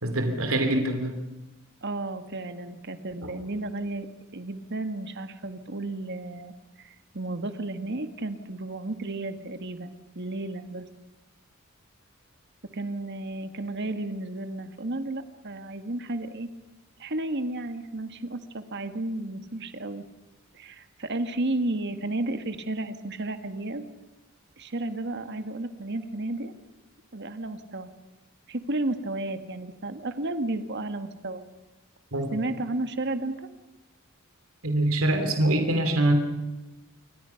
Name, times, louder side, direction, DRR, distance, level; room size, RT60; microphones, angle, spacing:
voice 1, 0.0-1.1 3.2-3.3 32.1-32.4 34.6-36.1, right 1 dB, 75° right, 6 dB, 3.2 m, -24 dB
voice 2, 1.8-4.1 4.3-10.9 12.7-16.5 17.0-20.1 20.5-23.8 24.6-26.5 27.1-27.9 28.5-31.4 32.3-33.5, right 2 dB, 55° right, 9 dB, 1.8 m, -33 dB
28.0 x 24.5 x 5.9 m, 1.1 s
head